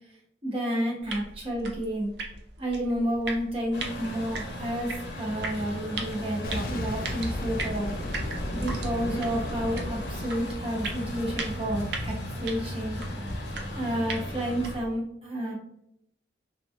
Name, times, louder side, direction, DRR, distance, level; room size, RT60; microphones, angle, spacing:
voice 1, 0.4-2.1 2.6-7.9 8.5-12.1 12.4-13.0 13.7-15.5, equal, 30° right, -3 dB, 0.8 m, -30 dB
sound 1, 1.0-14.9, right 3 dB, 75° right, 0.5 m, -39 dB
Truck, 3.7-14.8, left 1 dB, 80° left, 0.7 m, -36 dB
Boom, 6.4-11.3, left 1 dB, 50° left, 0.4 m, -35 dB
2.9 x 2.3 x 2.5 m, 0.76 s
head